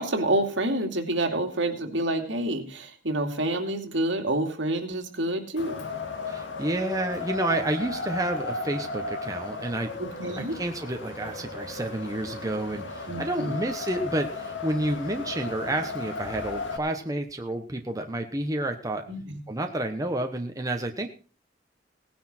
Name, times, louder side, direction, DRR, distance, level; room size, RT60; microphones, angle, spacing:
voice 1, 0.0-5.9 10.0-10.5 13.1-13.6 19.1-19.4, right 1 dB, 75° right, 3 dB, 2.6 m, -28 dB
Wind, 5.6-16.8, left 3 dB, 75° left, 2.2 m, -35 dB
voice 2, 6.3-9.9 10.4-19.0 19.5-21.1, right 1 dB, 20° right, 4 dB, 1.1 m, -30 dB
18.0 x 10.0 x 4.4 m, 0.40 s
head